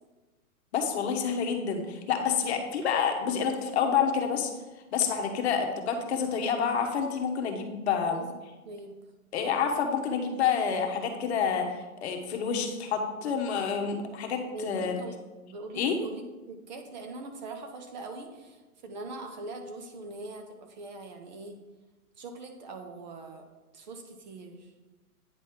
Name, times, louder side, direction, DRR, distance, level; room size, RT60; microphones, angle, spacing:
voice 1, 0.7-4.5 4.9-8.2 9.3-15.0 15.7-16.0, left 6 dB, 50° left, 4 dB, 1.1 m, -28 dB
voice 2, 8.7-9.0 14.5-14.7 15.0-15.1 15.4-18.6 18.8-21.6 22.2-23.4 23.7-24.7, right 3 dB, 30° right, 5 dB, 0.6 m, -42 dB
9.0 x 4.1 x 3.7 m, 1.2 s
hypercardioid pair, 140°, 44 cm